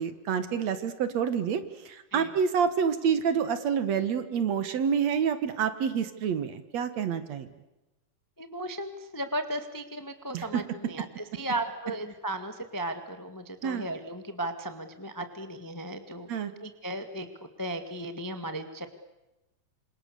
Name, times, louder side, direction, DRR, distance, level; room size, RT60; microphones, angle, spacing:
voice 1, 0.0-7.5 10.3-10.6 13.6-13.9 16.3-16.5, right 7 dB, 60° right, 11 dB, 2.5 m, -28 dB
voice 2, 8.4-16.3 16.6-17.3 17.6-18.9, right 1 dB, 15° left, 8 dB, 0.7 m, -35 dB
28.0 x 26.5 x 6.9 m, 0.98 s
omnidirectional pair, 3.8 m